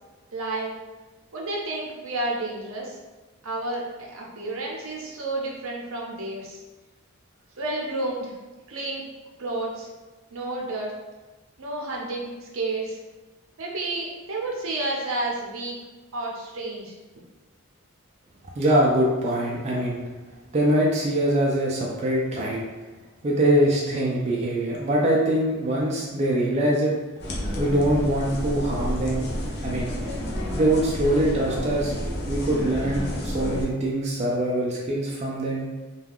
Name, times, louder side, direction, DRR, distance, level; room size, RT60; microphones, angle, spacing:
voice 1, 0.3-0.7 1.3-3.0 3.4-6.6 7.6-8.3 8.7-9.0 9.4-9.9 10.3-10.9 11.6-13.0 13.6-15.7 16.1-16.9, right 2 dB, 70° right, -2 dB, 0.6 m, -30 dB
voice 2, 18.6-20.0 20.5-22.6 23.2-26.9 27.6-29.3 29.6-29.9 30.5-31.9 32.3-35.7, right 1 dB, 30° right, -3 dB, 0.3 m, -23 dB
sound 1, 27.2-33.6, equal, 50° left, 0.6 m, -30 dB
2.3 x 2.2 x 3.4 m, 1.2 s
head